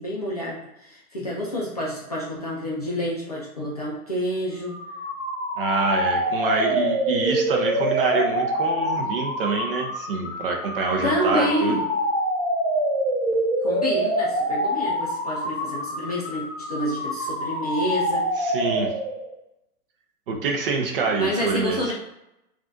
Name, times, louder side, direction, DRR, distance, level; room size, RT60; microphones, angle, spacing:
voice 1, 0.0-4.8 11.0-11.8 13.6-18.3 21.2-21.9, equal, 30° left, -6 dB, 0.3 m, -28 dB
sound 1, 4.6-19.3, equal, 10° left, 1.2 m, -26 dB
voice 2, 5.6-11.8 18.4-18.9 20.3-21.8, right 4 dB, 35° right, 2 dB, 0.5 m, -26 dB
3.6 x 2.4 x 2.5 m, 0.88 s
hypercardioid pair, 130°, 48 cm